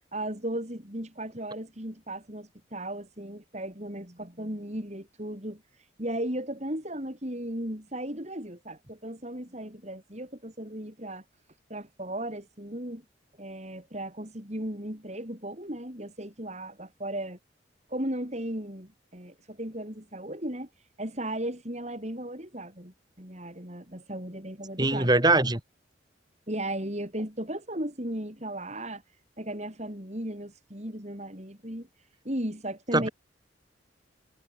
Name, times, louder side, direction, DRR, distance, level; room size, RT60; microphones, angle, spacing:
voice 1, 0.1-5.6 6.0-11.2 11.7-13.0 13.4-17.4 17.9-20.7 21.0-25.1 26.5-29.0 29.4-31.9 32.2-33.1, right 1 dB, 35° right, 6.8 m, -36 dB
voice 2, 24.8-25.6 32.9-33.1, right 2 dB, 20° right, 3.8 m, -22 dB
head